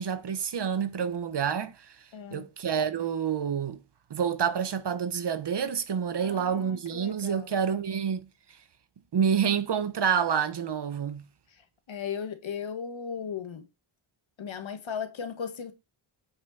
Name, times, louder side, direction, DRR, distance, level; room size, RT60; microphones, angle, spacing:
voice 1, 0.0-2.0 2.3-3.8 4.1-8.3 9.1-11.2, right 7 dB, 55° right, 1.0 m, -28 dB
voice 2, 2.1-2.5 6.2-7.5 11.5-13.7 14.4-15.7, left 7 dB, 65° left, 1.7 m, -37 dB
8.6 x 5.5 x 4.1 m
wide cardioid pair, 125°, 49 cm